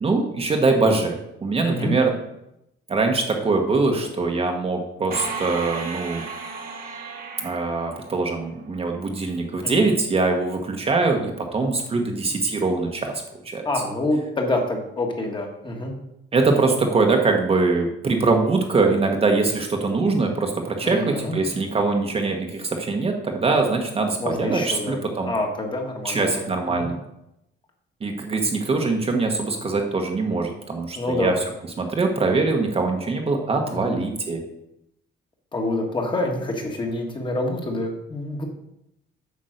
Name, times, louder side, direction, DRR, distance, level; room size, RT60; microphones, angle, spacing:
voice 1, 0.0-2.1 2.9-6.2 7.4-13.7 16.3-25.3 26.0-27.0 28.0-31.3 31.8-34.4, right 3 dB, 30° right, 3 dB, 1.1 m, -23 dB
sound 1, 5.1-8.8, right 4 dB, 45° right, 1.4 m, -34 dB
voice 2, 13.6-15.9 20.8-21.4 24.2-25.0 25.3-26.4 26.8-26.9 30.9-31.4 33.7-33.9 35.5-38.4, left 2 dB, 25° left, 2 dB, 1.5 m, -27 dB
8.5 x 5.2 x 6.5 m, 0.84 s
cardioid pair, 150°, 20 cm